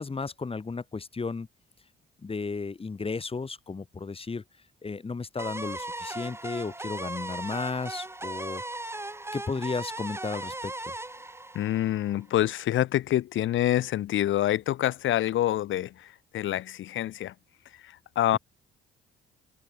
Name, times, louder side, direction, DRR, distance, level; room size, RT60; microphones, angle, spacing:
voice 1, 0.0-1.5 2.2-4.4 4.8-8.6 9.3-10.7, left 4 dB, 30° left, 3.4 m, -34 dB
sound 1, 5.4-12.3, right 2 dB, 10° right, 5.7 m, -37 dB
voice 2, 11.5-17.3 17.8-18.4, left 13 dB, 75° left, 2.5 m, -27 dB
cardioid pair, 90°, 20 cm